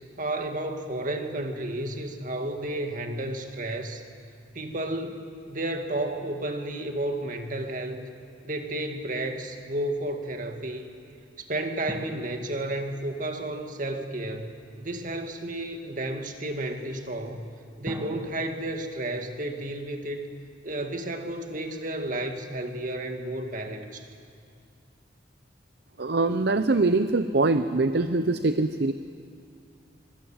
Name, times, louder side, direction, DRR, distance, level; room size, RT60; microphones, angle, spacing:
voice 1, 0.2-4.0 4.5-8.0 8.4-10.9 11.4-14.5 14.8-17.5 17.8-20.3 20.6-24.1, right 1 dB, 45° right, 5 dB, 2.1 m, -32 dB
sound 1, 11.9-14.5 17.8-20.5 20.7-20.8, right 1 dB, 15° right, 2.2 m, -43 dB
voice 2, 26.0-28.9, right 3 dB, 60° right, 10 dB, 0.7 m, -23 dB
24.5 x 22.5 x 8.8 m, 2.3 s
head